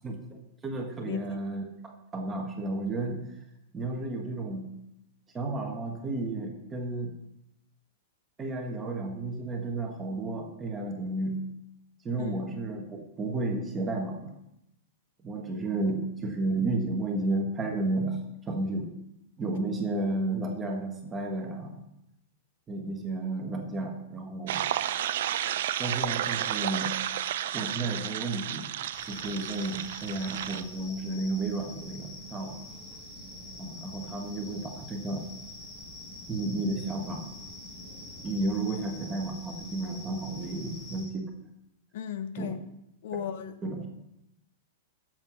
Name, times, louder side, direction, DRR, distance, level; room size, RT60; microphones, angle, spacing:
voice 1, 0.0-3.2 3.7-4.7 5.3-7.2 8.4-11.4 12.0-14.3 15.2-18.2 18.5-18.9 19.4-21.8 22.7-24.6 25.8-27.0 27.5-28.7 29.1-32.6 33.6-35.3 36.3-37.3 38.2-41.3 42.4-42.5 43.1-43.2 43.6-43.9, right 2 dB, 15° right, 1.5 m, -32 dB
sound 1, 24.5-30.6, right 11 dB, 60° right, 0.6 m, -32 dB
sound 2, 28.9-41.1, left 2 dB, 15° left, 5.0 m, -45 dB
voice 2, 41.9-42.6 43.0-43.6, left 9 dB, 55° left, 1.0 m, -35 dB
11.0 x 7.6 x 6.2 m
supercardioid pair, 165°, 0 cm